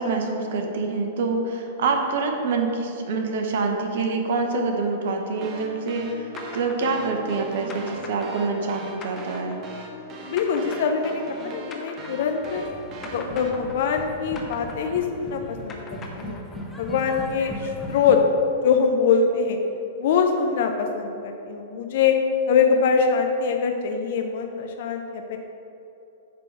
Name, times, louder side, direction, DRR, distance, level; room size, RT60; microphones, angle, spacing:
voice 1, 0.0-9.6, right 3 dB, 60° right, 3 dB, 0.9 m, -26 dB
sound 1, 5.3-13.5, right 2 dB, 35° right, 1.0 m, -40 dB
sound 2, 6.4-12.7 13.0-16.9, left 3 dB, 25° left, 1.1 m, -42 dB
voice 2, 10.3-12.6 13.0-16.4 16.8-18.2 18.6-19.6 20.0-22.2 22.5-25.4, left 6 dB, 60° left, 4 dB, 0.6 m, -23 dB
sound 3, 12.4-18.2, equal, 5° left, 1.2 m, -38 dB
9.5 x 3.8 x 6.0 m, 2.9 s
figure-of-eight pair, 100°, 0 cm